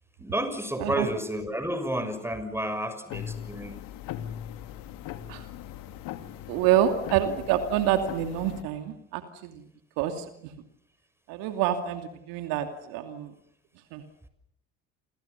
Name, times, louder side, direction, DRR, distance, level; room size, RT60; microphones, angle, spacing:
voice 1, 0.2-3.8, right 1 dB, 5° right, 10 dB, 6.4 m, -31 dB
sound 1, 3.1-8.6, left 11 dB, 65° left, 2.7 m, -39 dB
voice 2, 6.5-9.6 10.0-10.5 11.3-13.3 13.9-14.0, right 11 dB, 65° right, 7 dB, 2.7 m, -27 dB
29.0 x 27.5 x 6.9 m, 0.74 s
hypercardioid pair, 60°, 37 cm